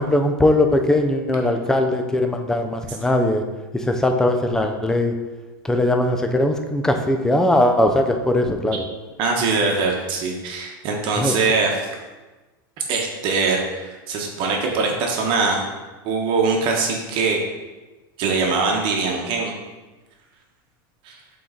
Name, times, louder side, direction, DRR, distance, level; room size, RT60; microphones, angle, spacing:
voice 1, 0.0-3.4 3.7-5.2 5.6-8.8 11.2-11.4, left 1 dB, 5° left, 5 dB, 0.5 m, -20 dB
voice 2, 9.2-11.9 12.9-15.6 16.0-17.4 18.2-19.5 21.0-21.2, right 4 dB, 45° right, 0 dB, 1.1 m, -22 dB
7.6 x 3.9 x 3.8 m, 1.2 s
supercardioid pair, 140°, 12 cm